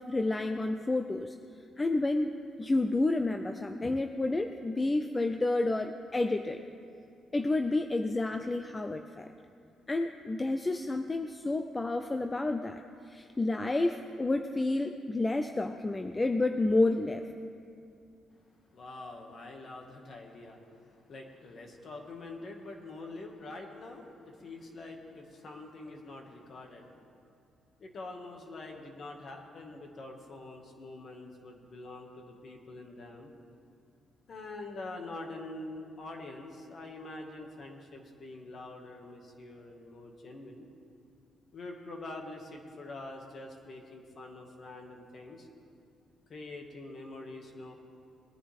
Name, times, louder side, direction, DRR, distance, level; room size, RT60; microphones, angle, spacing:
voice 1, 0.0-1.3 1.8-2.3 2.6-6.7 7.3-9.3 9.9-12.8 13.1-17.2, left 2 dB, 20° left, 7 dB, 0.5 m, -30 dB
voice 2, 18.7-26.9 27.8-33.3 34.3-40.7 41.5-45.5 46.3-47.7, left 2 dB, 50° left, 2 dB, 2.0 m, -45 dB
20.5 x 10.0 x 3.6 m, 2.5 s
cardioid pair, 90°, 0 cm